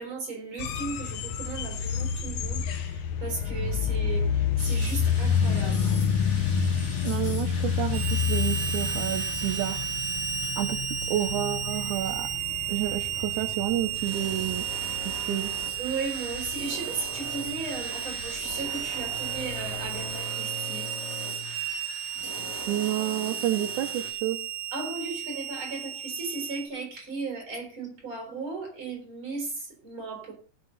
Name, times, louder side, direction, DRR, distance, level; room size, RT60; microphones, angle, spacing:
voice 1, 0.0-5.9 6.4-6.5 15.8-20.9 24.7-30.3, right 4 dB, 40° right, 5.5 m, -36 dB
sound 1, 0.6-20.1, left 7 dB, 75° left, 2.4 m, -29 dB
sound 2, 4.6-11.8 12.0-12.2 13.2-24.1, left 2 dB, 25° left, 2.5 m, -41 dB
voice 2, 7.0-9.9 10.6-10.8 11.1-12.3 12.7-14.6 15.0-15.5 22.7-24.4, right 13 dB, 90° right, 2.3 m, -30 dB
Harmonica, 7.9-26.7, right 10 dB, 65° right, 2.4 m, -33 dB
18.5 x 7.6 x 4.0 m
omnidirectional pair, 3.4 m